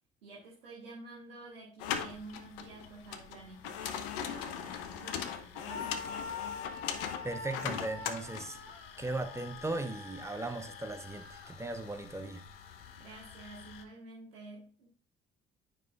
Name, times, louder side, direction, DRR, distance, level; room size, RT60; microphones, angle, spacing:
voice 1, 0.2-6.1 13.0-15.0, right 3 dB, 80° right, 1.2 m, -50 dB
sound 1, 1.8-13.8, left 8 dB, 70° left, 0.7 m, -42 dB
Screaming, 5.6-11.6, left 5 dB, 50° left, 1.5 m, -45 dB
voice 2, 7.2-8.6 9.0-12.4, right 2 dB, 10° right, 0.8 m, -37 dB
9.4 x 5.2 x 2.3 m
figure-of-eight pair, 45°, 30 cm